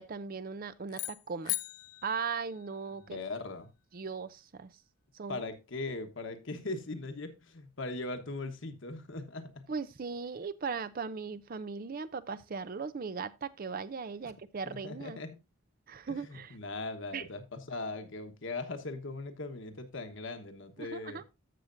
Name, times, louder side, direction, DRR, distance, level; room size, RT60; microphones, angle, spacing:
voice 1, 0.0-1.5 2.0-3.2 3.9-4.7 5.1-5.4 9.7-15.2 15.9-16.6 17.1-17.3 20.8-21.2, right 5 dB, 40° right, 0.4 m, -38 dB
sound 1, 0.9-3.2, left 19 dB, 85° left, 0.4 m, -39 dB
voice 2, 3.0-3.7 5.3-9.7 14.7-15.4 16.1-21.2, left 3 dB, 55° left, 1.2 m, -40 dB
14.0 x 6.5 x 2.5 m
head